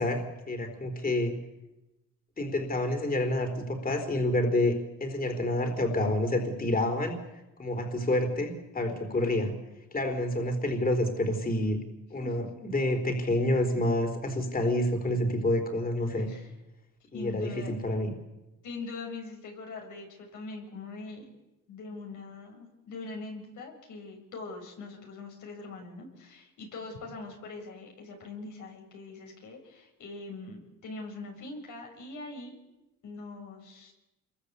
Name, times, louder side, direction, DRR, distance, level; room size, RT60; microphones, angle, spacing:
voice 1, 0.0-1.3 2.4-7.2 7.6-9.5 9.9-11.8 12.1-16.3 17.1-18.1, left 1 dB, 30° left, 5 dB, 4.1 m, -28 dB
voice 2, 16.1-16.5 17.1-17.8 18.6-21.3 21.7-32.6 33.0-33.9, left 3 dB, 80° left, 1 dB, 6.9 m, -42 dB
26.5 x 22.5 x 8.5 m, 0.97 s
cardioid pair, 90°, 30 cm